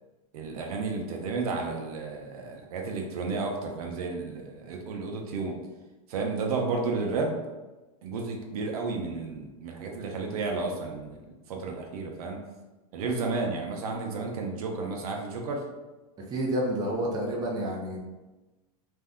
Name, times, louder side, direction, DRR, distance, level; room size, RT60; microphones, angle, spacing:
voice 1, 0.3-5.5 6.1-7.4 8.0-12.4 12.9-15.7, right 3 dB, 75° right, 1 dB, 0.6 m, -32 dB
voice 2, 16.3-18.0, right 1 dB, 20° right, -2 dB, 0.6 m, -29 dB
2.6 x 2.1 x 3.5 m, 1.1 s
supercardioid pair, 130°, 19 cm